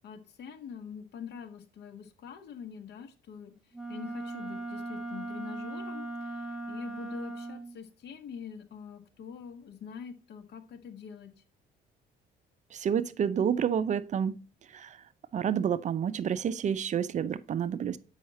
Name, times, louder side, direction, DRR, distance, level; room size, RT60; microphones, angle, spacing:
voice 1, 0.0-11.3, left 7 dB, 70° left, 1.4 m, -45 dB
Wind instrument woodwind instrument, 3.7-7.8, right 2 dB, 5° right, 1.1 m, -38 dB
voice 2, 12.7-14.4 14.7-15.0 15.3-18.0, right 8 dB, 45° right, 0.5 m, -29 dB
7.3 x 5.6 x 4.2 m
cardioid pair, 115°, 18 cm